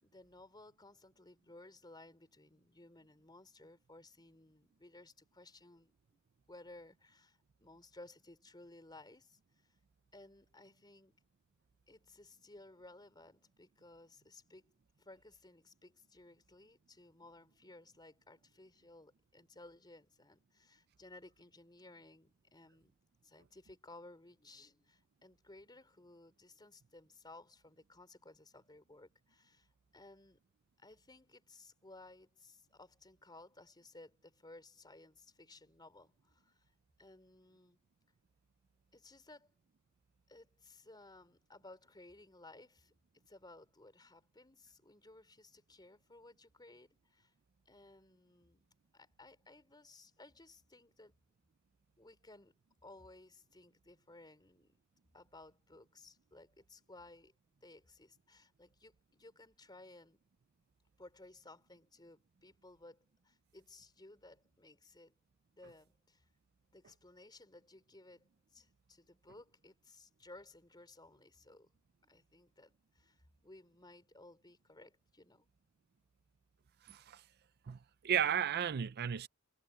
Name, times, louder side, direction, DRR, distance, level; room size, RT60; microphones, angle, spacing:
voice 1, 0.0-6.2 6.5-9.4 10.1-11.2 11.9-14.7 15.0-22.9 23.2-29.7 29.9-30.4 30.8-36.7 37.0-37.8 38.9-39.5 40.3-42.9 43.3-47.3 47.7-48.6 48.9-51.1 52.0-52.5 52.8-54.8 55.1-57.3 57.6-60.2 61.0-65.1 65.6-66.3 66.7-71.7 72.0-75.5, left 2 dB, 20° left, 3.8 m, -58 dB
voice 2, 76.8-77.2 77.7-77.8 78.0-79.3, right 8 dB, 50° right, 0.5 m, -33 dB
head